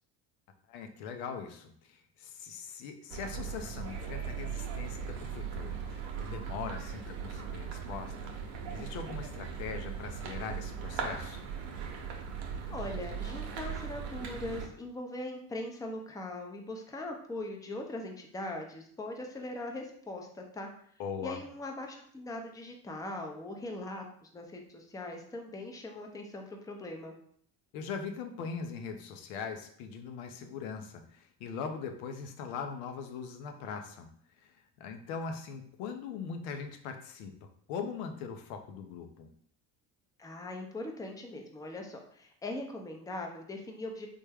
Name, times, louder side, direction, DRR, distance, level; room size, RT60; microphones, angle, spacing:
voice 1, 0.7-11.4 21.0-21.4 27.7-34.1 34.4-39.3, left 6 dB, 80° left, 6 dB, 0.6 m, -41 dB
sound 1, 3.1-14.7, right 7 dB, 75° right, 0.7 m, -39 dB
voice 2, 12.7-20.7 21.2-27.1 40.2-44.1, left 2 dB, 10° left, 2 dB, 0.5 m, -40 dB
3.4 x 2.1 x 3.4 m, 0.63 s
supercardioid pair, 75°, 44 cm